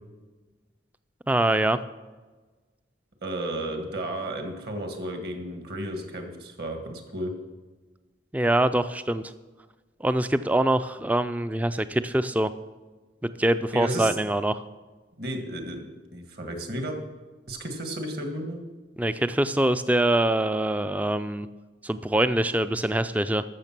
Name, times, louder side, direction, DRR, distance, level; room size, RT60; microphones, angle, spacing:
voice 1, 1.3-1.8 8.3-9.3 10.0-12.5 13.4-14.6 19.0-21.5 21.8-23.4, right 1 dB, 10° right, 12 dB, 0.3 m, -24 dB
voice 2, 3.2-7.3 13.7-14.1 15.2-16.9 17.5-18.6, right 1 dB, 55° right, 5 dB, 1.7 m, -33 dB
13.5 x 6.6 x 6.0 m, 1.3 s
head